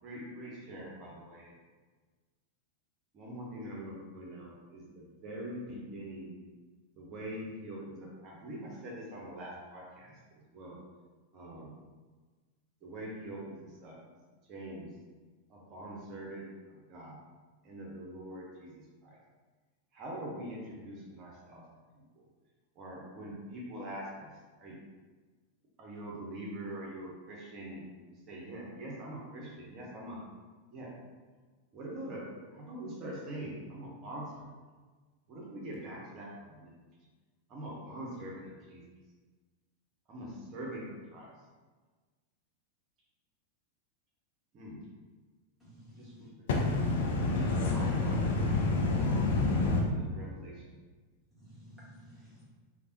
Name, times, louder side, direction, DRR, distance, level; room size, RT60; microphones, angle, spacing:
voice 1, 0.0-1.5 3.1-6.3 7.0-10.2 10.5-10.8 11.3-11.7 12.8-14.0 14.5-14.9 15.5-17.2 17.6-19.2 19.9-21.7 21.9-22.2 22.8-24.3 24.6-24.8 25.8-27.8 28.1-30.2 30.7-30.9 31.7-32.2 32.5-34.5 35.3-36.8 37.5-38.8 40.1-41.3 44.5-44.8 46.0-46.3 47.2-49.4 49.9-50.8, right 1 dB, 35° right, -4 dB, 0.7 m, -43 dB
voice 2, 45.6-46.3 51.4-52.4, equal, ahead, -10 dB, 1.3 m, -54 dB
voice 3, 46.5-49.8, left 3 dB, 55° left, 0 dB, 0.4 m, -28 dB
3.3 x 2.1 x 2.8 m, 1.4 s
figure-of-eight pair, 90°, 0 cm